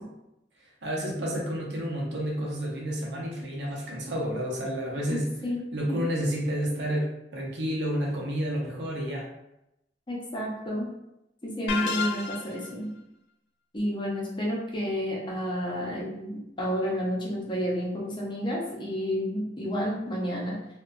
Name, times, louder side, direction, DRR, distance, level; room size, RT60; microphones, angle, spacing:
voice 1, 0.8-5.3 5.7-7.1 7.3-9.2, equal, 65° right, -3 dB, 0.6 m, -30 dB
voice 2, 5.1-5.6 5.9-6.0 10.1-10.9 11.4-12.9 13.7-20.6, equal, 25° left, -3 dB, 0.6 m, -30 dB
sound 1, 11.7-12.7, left 4 dB, 70° left, 0.3 m, -30 dB
2.7 x 2.1 x 2.5 m, 0.86 s
head